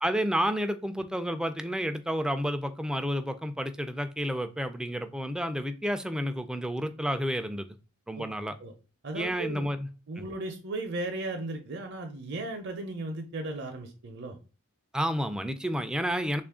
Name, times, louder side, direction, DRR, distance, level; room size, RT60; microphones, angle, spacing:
voice 1, 0.0-7.7 8.1-8.5 9.1-9.9 14.9-16.4, equal, 5° right, 9 dB, 0.3 m, -30 dB
voice 2, 9.0-9.7 10.1-14.4, right 2 dB, 55° right, 4 dB, 0.6 m, -36 dB
3.5 x 2.4 x 3.5 m, 0.35 s
head